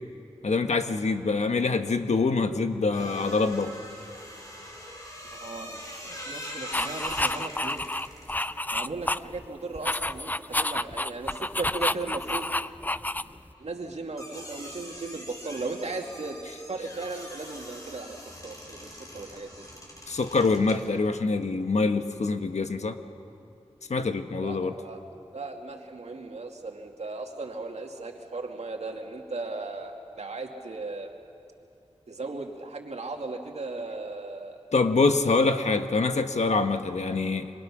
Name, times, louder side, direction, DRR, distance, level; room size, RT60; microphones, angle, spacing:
voice 1, 0.4-3.8 20.1-23.0 23.9-24.7 34.7-37.5, left 3 dB, 80° left, 7 dB, 1.3 m, -25 dB
sound 1, 2.9-11.0 11.3-20.8, equal, 30° left, 5.5 m, -43 dB
voice 2, 5.3-7.8 8.7-12.5 13.6-19.5 24.4-25.0 25.3-31.1 32.1-34.6, right 3 dB, 70° right, 2 dB, 2.3 m, -37 dB
sound 2, 6.7-9.5 9.8-13.5, left 1 dB, 15° left, 0.5 m, -29 dB
26.5 x 25.5 x 6.2 m, 2.7 s
wide cardioid pair, 55°, 12 cm